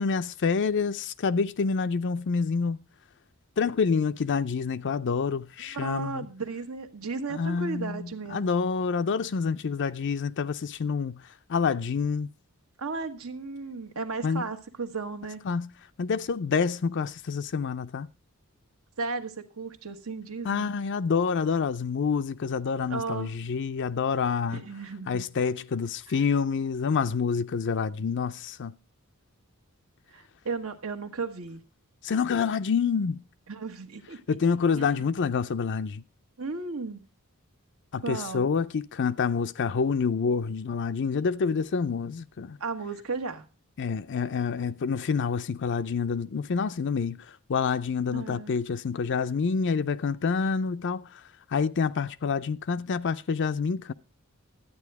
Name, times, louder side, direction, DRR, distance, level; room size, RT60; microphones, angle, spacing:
voice 1, 0.0-2.8 3.6-6.3 7.3-11.2 11.5-12.3 14.2-14.5 15.4-15.7 16.0-18.1 20.4-24.6 25.1-28.7 32.0-33.2 34.3-36.0 37.9-42.6 43.8-51.2 51.5-53.9, left 5 dB, 55° left, 0.5 m, -27 dB
voice 2, 5.7-8.5 12.8-15.4 19.0-20.7 22.9-23.3 24.5-25.2 30.1-31.6 33.5-34.2 34.7-35.1 36.4-37.1 38.0-38.5 42.6-43.4 48.1-48.5, right 4 dB, 75° right, 1.4 m, -35 dB
12.0 x 9.1 x 4.6 m
head